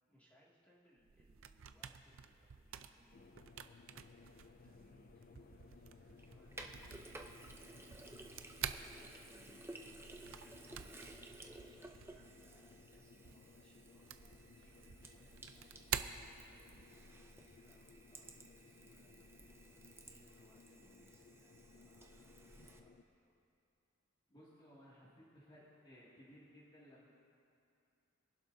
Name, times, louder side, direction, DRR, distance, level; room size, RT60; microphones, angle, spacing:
voice 1, 0.1-8.3 9.2-19.6 20.1-23.4, equal, 5° left, -7 dB, 2.2 m, -71 dB
sound 1, 1.0-17.0, right 9 dB, 60° right, 0.5 m, -49 dB
sound 2, 3.1-23.0, left 4 dB, 40° left, 0.3 m, -62 dB
Sink (filling or washing), 6.2-22.8, right 2 dB, 10° right, 0.6 m, -56 dB
voice 2, 24.3-27.1, equal, 20° left, -9 dB, 2.3 m, -60 dB
25.0 x 11.5 x 2.7 m, 2.5 s
head